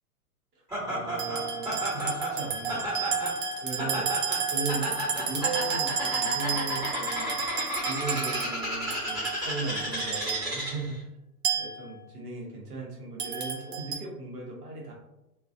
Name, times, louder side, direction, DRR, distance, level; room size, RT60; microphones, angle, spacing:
Laughter, 0.7-10.9, equal, 10° right, 0.8 m, -33 dB
voice 1, 0.9-3.2 3.6-7.4 7.8-11.1 11.5-14.9, right 3 dB, 70° right, -2 dB, 1.0 m, -37 dB
sound 1, 1.2-10.7 11.4-11.9 13.2-14.0, right 6 dB, 35° right, 0.4 m, -32 dB
2.4 x 2.3 x 2.4 m, 0.92 s
figure-of-eight pair, 110°, 47 cm